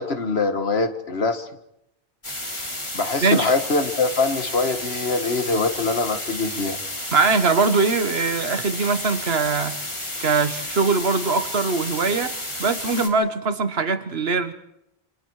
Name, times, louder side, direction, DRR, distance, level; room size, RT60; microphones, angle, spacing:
voice 1, 0.0-1.5 2.9-6.8, left 3 dB, 85° left, 8 dB, 2.0 m, -23 dB
sound 1, 2.2-13.1, left 1 dB, 30° left, 2.8 m, -32 dB
voice 2, 3.2-3.5 7.1-9.8 10.2-14.5, right 4 dB, 80° right, 11 dB, 1.6 m, -22 dB
27.5 x 26.0 x 4.8 m, 0.83 s
omnidirectional pair, 1.0 m